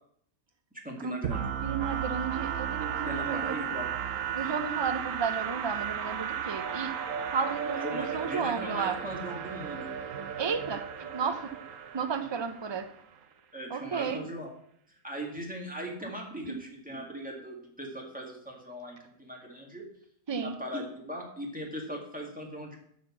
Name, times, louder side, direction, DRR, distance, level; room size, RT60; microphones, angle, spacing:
voice 1, 0.8-1.5 3.1-3.9 7.8-9.9 13.5-14.6 15.0-19.8 20.3-22.8, equal, 5° right, -1 dB, 2.1 m, -39 dB
sound 1, 1.2-13.0, right 8 dB, 70° right, 1.2 m, -35 dB
voice 2, 1.6-3.6 4.3-6.9 7.3-9.0 10.4-11.5 11.9-12.9 13.7-14.2 16.4-16.6 20.3-20.5, right 6 dB, 30° right, 9 dB, 0.5 m, -33 dB
12.5 x 4.2 x 7.2 m, 0.67 s
omnidirectional pair, 1.5 m